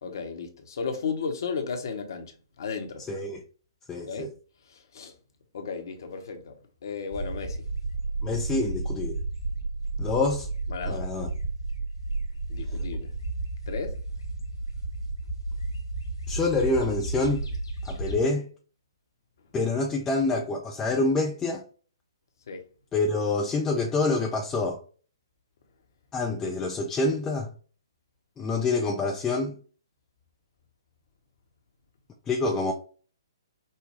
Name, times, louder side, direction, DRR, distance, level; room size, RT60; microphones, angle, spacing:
voice 1, 0.0-3.0 4.0-4.3 4.7-5.1 5.5-6.6 6.8-7.6 10.7-11.1 12.5-13.1 13.7-14.0 22.5-22.6, left 5 dB, 55° left, 1.0 m, -34 dB
voice 2, 3.1-3.4 3.9-4.3 8.2-9.2 10.0-10.5 10.9-11.3 16.3-17.4 17.8-18.5 19.5-21.6 22.9-24.8 26.1-27.5 28.4-29.5 32.3-32.7, left 3 dB, 15° left, 0.6 m, -26 dB
sound 1, 7.1-18.3, right 2 dB, 70° left, 1.5 m, -32 dB
5.6 x 2.2 x 3.3 m
figure-of-eight pair, 125°, 2 cm